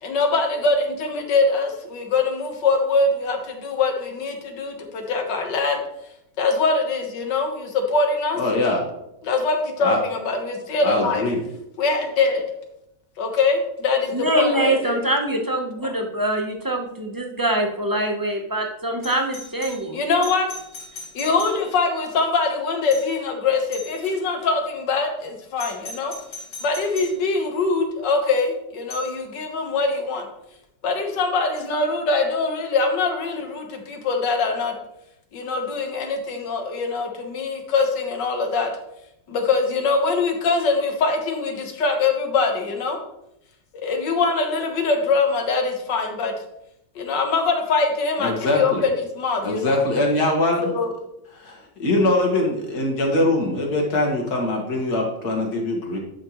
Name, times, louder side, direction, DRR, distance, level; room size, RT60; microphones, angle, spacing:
voice 1, 0.0-5.8 6.4-8.4 9.2-11.2 11.8-12.4 13.2-15.0 15.8-15.9 19.9-20.5 21.1-26.1 26.6-30.3 30.8-34.7 35.3-38.7 39.3-43.0 43.7-46.3 46.9-49.8 50.6-50.9, left 3 dB, 90° left, 4 dB, 1.8 m, -23 dB
voice 2, 8.4-8.8 9.8-10.0 10.8-11.4 48.2-48.8 49.4-50.7 51.4-56.0, left 2 dB, 65° left, 0 dB, 2.1 m, -22 dB
voice 3, 14.1-20.0, right 1 dB, 25° right, 2 dB, 0.4 m, -24 dB
Doorbell, 19.0-22.0 22.9-23.3 23.7-24.2 25.6-27.2 28.9-29.2 31.6-31.7, left 2 dB, 45° left, 1.8 m, -39 dB
11.0 x 5.7 x 3.0 m, 0.83 s
omnidirectional pair, 1.8 m